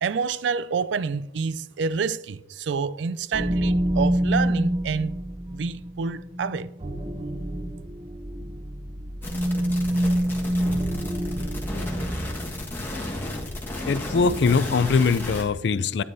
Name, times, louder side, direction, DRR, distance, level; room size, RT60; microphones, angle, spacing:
voice 1, 0.0-5.2 5.5-6.7, right 5 dB, 75° right, 0.4 m, -28 dB
sound 1, 3.3-12.5, equal, 30° right, 0.7 m, -27 dB
sound 2, 9.2-15.4, left 1 dB, 10° left, 1.4 m, -33 dB
voice 2, 13.9-16.0, left 4 dB, 65° left, 0.4 m, -22 dB
12.5 x 9.7 x 2.7 m
head